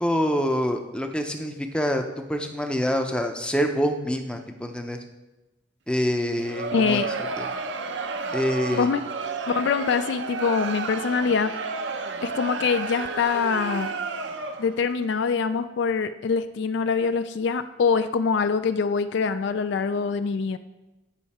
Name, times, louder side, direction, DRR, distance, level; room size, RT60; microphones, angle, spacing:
voice 1, 0.0-2.0 2.3-5.0 5.9-7.0 7.4-7.5 8.3-8.9, equal, 5° left, 4 dB, 0.6 m, -26 dB
Crowd, 6.3-14.8, right 4 dB, 60° right, 0.6 m, -31 dB
voice 2, 6.7-7.1 8.7-9.0 9.5-11.5 12.2-13.9 14.6-20.6, left 5 dB, 55° left, 11 dB, 0.3 m, -24 dB
8.9 x 5.6 x 4.2 m, 1.1 s
head